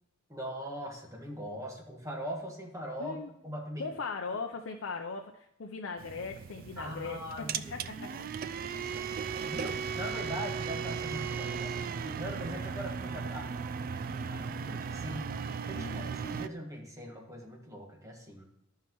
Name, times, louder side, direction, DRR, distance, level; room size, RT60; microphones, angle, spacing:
voice 1, 0.3-3.2 3.4-3.9 6.8-8.1 8.4-13.5 14.2-15.4 15.7-18.5, equal, 15° right, -1 dB, 1.5 m, -41 dB
voice 2, 3.8-7.2 7.7-8.1 13.3-13.5 15.7-16.1, left 4 dB, 65° left, 3 dB, 0.6 m, -39 dB
sound 1, 6.0-16.5, right 6 dB, 45° right, 0.3 m, -36 dB
12.5 x 5.6 x 3.0 m, 0.80 s
head